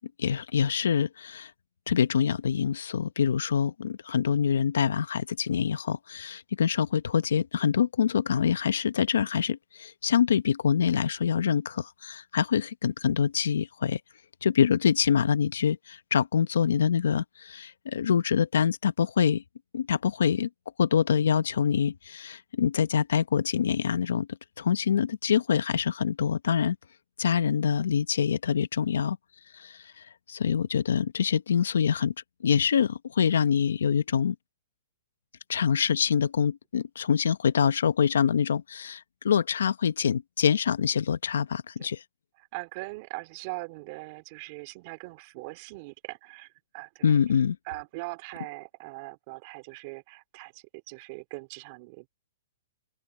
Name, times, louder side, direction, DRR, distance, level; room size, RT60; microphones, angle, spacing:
voice 1, 0.2-1.5 1.9-14.0 14.4-19.4 19.7-20.5 20.8-24.3 24.6-26.8 27.2-29.2 29.5-32.1 32.4-34.3 35.5-42.0 47.0-47.6, left 7 dB, 80° left, 1.1 m, -25 dB
voice 2, 42.5-47.1 47.7-52.1, right 26 dB, 45° right, 2.6 m, -41 dB
open air
hypercardioid pair, 135°, 0 cm